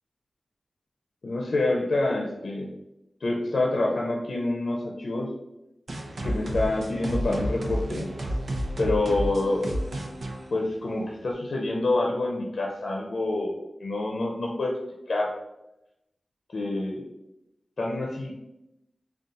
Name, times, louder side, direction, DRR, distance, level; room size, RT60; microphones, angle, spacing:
voice 1, 1.2-2.7 3.2-5.3 6.2-8.1 8.8-9.8 10.5-14.8 15.1-15.3 16.5-17.0 17.8-18.3, left 2 dB, 70° left, -1 dB, 0.6 m, -27 dB
sound 1, 5.9-11.3, equal, 80° right, 0.7 m, -31 dB
4.0 x 2.4 x 3.7 m, 0.89 s
wide cardioid pair, 70°, 0 cm